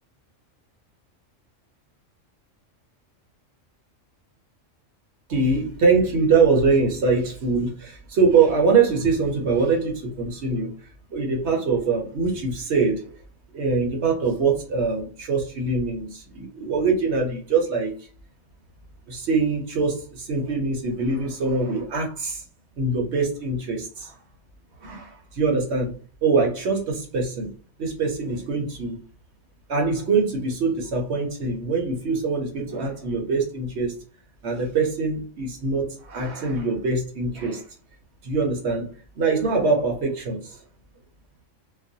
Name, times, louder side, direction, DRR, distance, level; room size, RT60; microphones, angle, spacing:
voice 1, 5.3-10.7 11.1-13.1 13.5-17.9 19.1-22.4 22.8-24.2 24.8-25.9 26.2-27.5 27.8-29.0 29.7-33.9 34.4-37.6 38.2-38.9 39.2-40.6, right 4 dB, 65° right, 2 dB, 0.9 m, -23 dB
2.4 x 2.1 x 2.6 m, 0.38 s
omnidirectional pair, 1.3 m